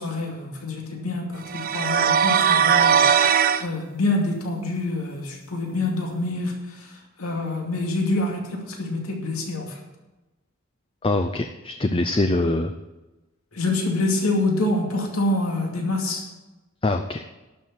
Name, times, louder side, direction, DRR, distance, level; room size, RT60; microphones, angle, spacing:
voice 1, 0.0-9.8 13.5-16.2, left 2 dB, 85° left, 0 dB, 2.5 m, -26 dB
sound 1, 1.5-3.7, right 7 dB, 40° right, 0.5 m, -19 dB
voice 2, 11.0-12.7 16.8-17.2, left 2 dB, 25° left, 7 dB, 0.5 m, -23 dB
12.0 x 6.7 x 7.3 m, 1.1 s
head